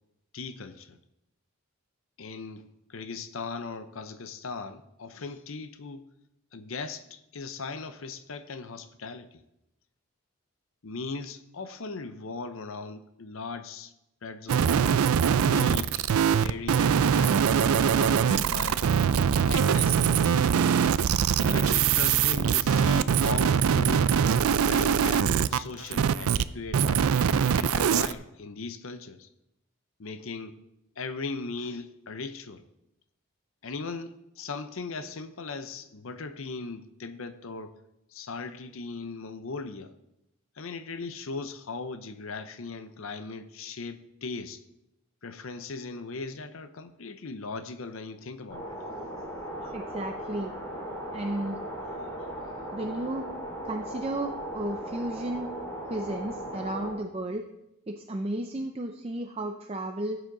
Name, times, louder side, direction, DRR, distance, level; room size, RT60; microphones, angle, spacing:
voice 1, 0.3-1.0 2.2-6.0 6.5-9.4 10.8-13.9 14.2-14.8 15.4-16.1 16.3-17.5 18.0-18.8 19.4-20.7 21.4-24.2 24.6-27.1 27.6-29.3 30.0-30.6 31.0-32.7 33.6-37.8 38.1-39.9 40.6-44.6 45.2-48.8 49.6-50.0 52.0-52.3, left 4 dB, 70° left, 0.7 m, -38 dB
sound 1, 14.5-26.4 26.7-28.1, right 7 dB, 80° right, 0.4 m, -23 dB
sound 2, 48.5-56.9, right 1 dB, 15° left, 3.6 m, -37 dB
voice 2, 49.7-50.5 51.1-51.6 52.7-53.3 53.6-55.5 55.9-57.4 57.9-60.2, right 1 dB, 25° right, 0.5 m, -33 dB
14.5 x 8.0 x 3.9 m
head